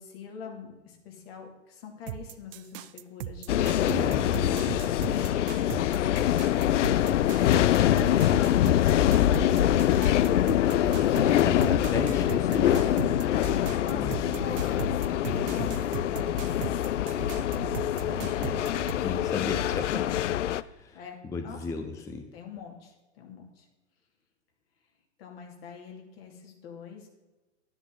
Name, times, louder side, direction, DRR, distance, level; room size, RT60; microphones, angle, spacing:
voice 1, 0.0-4.0 5.1-6.5 13.8-16.8 18.3-20.1 20.9-21.2 21.4-21.6 22.3-23.7 25.2-27.1, left 6 dB, 55° left, 2 dB, 2.6 m, -44 dB
sound 1, 2.1-18.9, right 11 dB, 50° right, 0.6 m, -38 dB
sound 2, 3.5-20.6, left 12 dB, 75° left, 0.5 m, -24 dB
voice 2, 3.9-4.7 11.0-14.4 18.1-18.6 19.0-20.2 20.5-22.3, left 4 dB, 10° left, 7 dB, 0.5 m, -36 dB
11.0 x 9.8 x 3.8 m, 1.2 s
hypercardioid pair, 110°, 37 cm